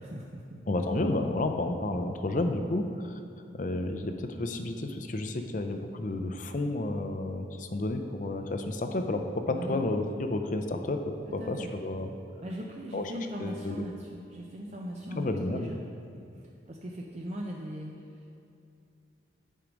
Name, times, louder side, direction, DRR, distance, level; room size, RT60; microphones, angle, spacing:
voice 1, 0.0-0.6 9.5-9.8 11.4-11.7 12.4-15.8 16.3-18.3, equal, 35° right, -1 dB, 0.5 m, -39 dB
voice 2, 0.7-3.2 3.5-12.1 12.9-13.1 13.4-13.8 15.1-15.7, left 2 dB, 45° left, 6 dB, 0.5 m, -31 dB
9.0 x 4.8 x 5.1 m, 2.6 s
head